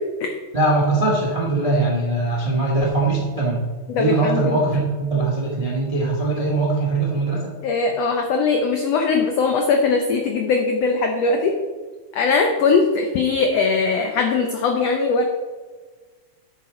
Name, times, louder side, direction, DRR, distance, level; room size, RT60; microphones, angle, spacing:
voice 1, 0.5-3.6 4.0-7.5, right 2 dB, 55° right, -2 dB, 0.4 m, -21 dB
voice 2, 3.9-4.6 7.6-11.6 12.1-15.2, left 4 dB, 85° left, 4 dB, 1.4 m, -20 dB
11.0 x 8.4 x 3.8 m, 1.4 s
omnidirectional pair, 3.9 m